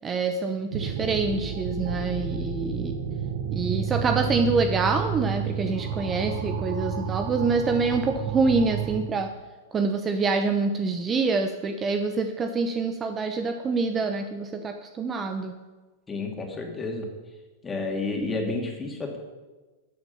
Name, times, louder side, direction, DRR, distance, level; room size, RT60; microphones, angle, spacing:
voice 1, 0.0-2.9 3.5-9.3 9.7-15.5, right 4 dB, 25° right, 7 dB, 0.7 m, -26 dB
sound 1, 0.7-9.0, right 7 dB, 60° right, 1.3 m, -30 dB
voice 2, 16.1-17.1 17.6-19.2, left 3 dB, 15° left, 1 dB, 2.4 m, -30 dB
12.5 x 7.0 x 5.5 m, 1.3 s
hypercardioid pair, 105°, 0 cm